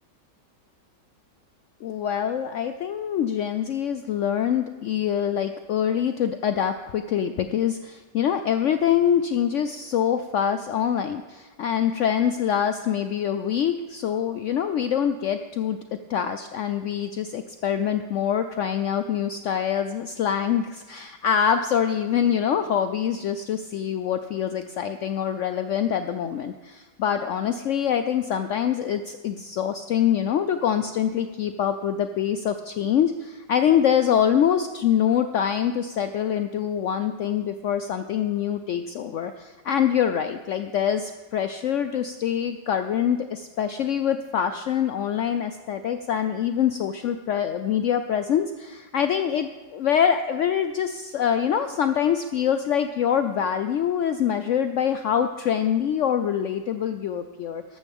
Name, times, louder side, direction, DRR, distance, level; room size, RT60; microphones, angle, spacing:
voice 1, 1.8-15.8 16.1-57.8, left 9 dB, 85° left, 9 dB, 0.6 m, -25 dB
13.5 x 12.0 x 3.6 m, 1.3 s
omnidirectional pair, 1.9 m